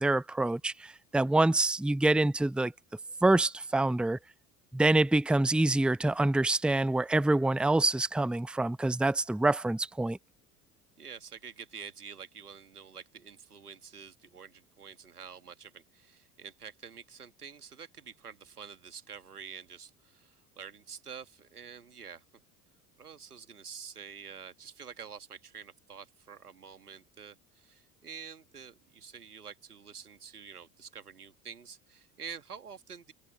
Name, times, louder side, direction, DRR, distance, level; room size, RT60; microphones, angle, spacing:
voice 1, 0.0-2.7 3.2-4.2 4.7-10.2, right 2 dB, ahead, 0.8 m, -26 dB
voice 2, 11.0-22.2 23.0-33.1, right 6 dB, 90° right, 1.9 m, -47 dB
figure-of-eight pair, 65°, 45 cm